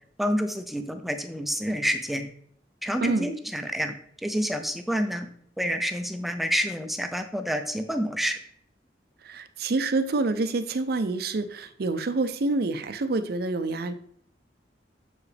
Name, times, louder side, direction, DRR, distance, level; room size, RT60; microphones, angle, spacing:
voice 1, 0.2-2.3 2.8-3.9 4.2-5.3 5.6-8.4, equal, ahead, 7 dB, 0.5 m, -28 dB
voice 2, 9.2-13.9, right 3 dB, 60° right, 11 dB, 0.5 m, -27 dB
7.0 x 4.8 x 3.3 m, 0.65 s
head